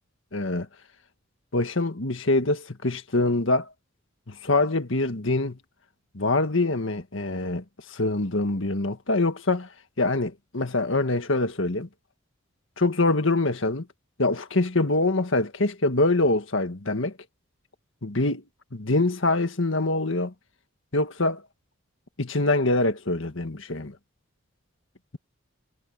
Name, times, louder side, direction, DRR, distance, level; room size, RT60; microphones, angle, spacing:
voice 1, 0.3-0.7 1.5-3.7 4.3-5.6 6.1-9.7 10.0-11.9 12.8-13.9 14.2-17.2 18.0-18.4 18.7-20.3 20.9-21.4 22.2-24.0, left 2 dB, 70° left, 1.8 m, -24 dB
head